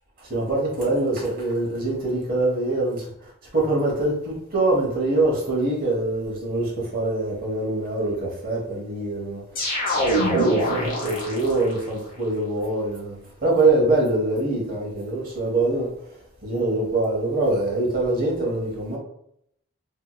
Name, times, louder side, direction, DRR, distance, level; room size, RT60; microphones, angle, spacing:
voice 1, 0.2-3.1 3.5-9.4 10.0-13.2 13.4-15.9 16.4-19.0, right 2 dB, 45° right, 0.9 m, -24 dB
sound 1, 9.6-11.8, equal, 40° left, 0.8 m, -24 dB
2.8 x 2.8 x 2.3 m
head